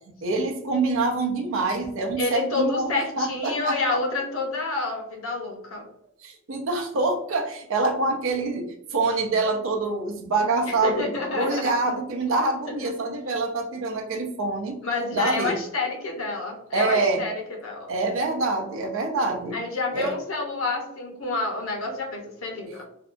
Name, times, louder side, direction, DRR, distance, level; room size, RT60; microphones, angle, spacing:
voice 1, 0.1-2.9 3.2-4.0 6.2-14.8 15.1-15.5 16.7-17.2 17.9-19.6 19.9-20.1, right 3 dB, 70° right, 3 dB, 0.6 m, -26 dB
voice 2, 2.2-5.9 10.6-11.7 12.8-12.9 14.8-17.9 19.5-22.9, left 3 dB, 75° left, 1 dB, 0.8 m, -28 dB
2.7 x 2.2 x 2.5 m, 0.72 s
head